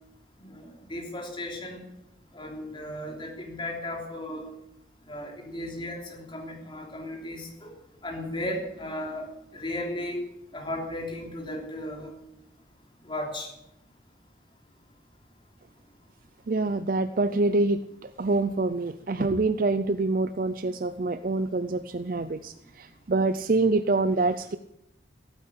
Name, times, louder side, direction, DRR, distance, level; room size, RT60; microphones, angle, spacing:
voice 1, 0.4-1.8 2.3-4.5 5.1-7.7 8.0-9.3 9.5-10.2 10.5-12.1 13.0-13.5, left 1 dB, 25° left, 1 dB, 3.3 m, -35 dB
voice 2, 16.5-24.6, right 3 dB, 50° right, 11 dB, 0.5 m, -26 dB
15.5 x 9.2 x 8.5 m, 0.82 s
head